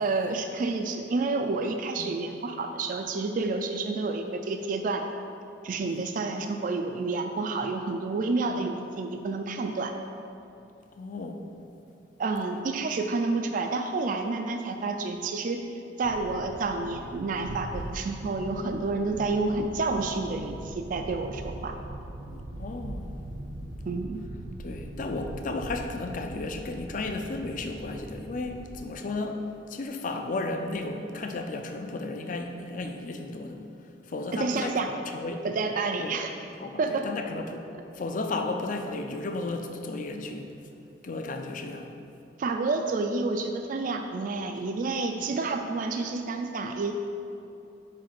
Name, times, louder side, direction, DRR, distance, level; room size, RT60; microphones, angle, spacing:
voice 1, 0.0-5.1 5.6-9.9 12.2-15.6 16.0-21.7 23.9-24.2 34.3-34.9 35.4-36.3 36.8-37.1 42.4-46.9, right 3 dB, 45° right, 5 dB, 0.3 m, -29 dB
voice 2, 11.0-11.4 22.3-23.2 24.6-35.5 36.0-36.2 36.6-37.6 37.9-40.5 41.0-41.9 45.2-45.3, left 2 dB, 45° left, 5 dB, 0.5 m, -34 dB
sound 1, 16.0-28.8, right 1 dB, 85° right, 0.6 m, -41 dB
5.2 x 4.6 x 5.8 m, 2.7 s
head